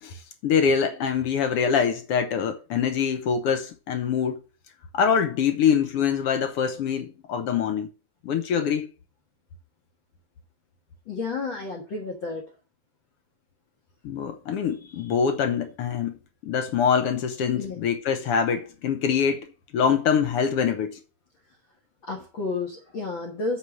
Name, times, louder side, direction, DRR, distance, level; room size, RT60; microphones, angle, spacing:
voice 1, 0.0-4.4 4.9-7.9 8.2-8.9 14.0-16.2 16.4-21.0, left 7 dB, 70° left, 1.4 m, -24 dB
voice 2, 11.1-12.5 17.5-17.8 22.1-23.6, left 3 dB, 45° left, 1.9 m, -31 dB
8.5 x 4.9 x 6.4 m
omnidirectional pair, 3.6 m